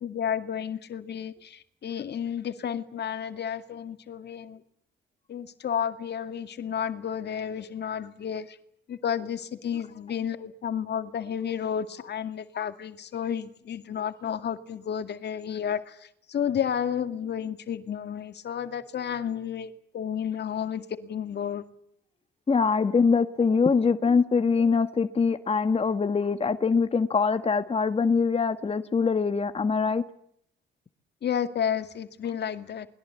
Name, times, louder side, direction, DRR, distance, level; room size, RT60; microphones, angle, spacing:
voice 1, 0.0-4.6 5.3-8.5 8.9-15.8 16.3-21.6 31.2-32.9, left 8 dB, 60° left, 10 dB, 2.2 m, -31 dB
voice 2, 22.5-30.0, left 5 dB, 30° left, 10 dB, 1.5 m, -23 dB
28.0 x 21.0 x 8.2 m, 0.69 s
cardioid pair, 90°, 20 cm